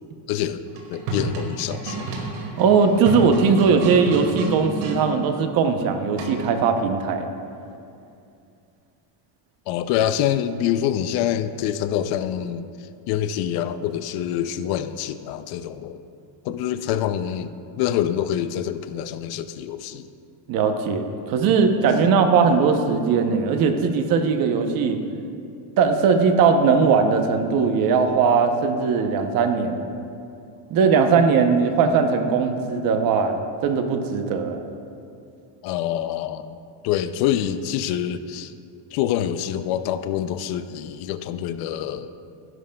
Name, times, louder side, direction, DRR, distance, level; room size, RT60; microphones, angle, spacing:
voice 1, 0.3-0.6 0.9-2.1 9.7-12.6 13.1-16.0 16.4-17.5 17.8-20.1 21.8-21.9 35.6-36.6 36.8-38.5 38.9-42.1, left 10 dB, 50° left, 11 dB, 0.5 m, -26 dB
sound 1, 0.7-5.0 6.2-6.6, right 3 dB, 85° right, 2.3 m, -30 dB
voice 2, 2.6-7.3 20.5-25.0 25.8-29.9 30.7-34.6, right 5 dB, 45° right, 6 dB, 0.7 m, -19 dB
16.5 x 11.0 x 2.2 m, 2.6 s
cardioid pair, 175°, 48 cm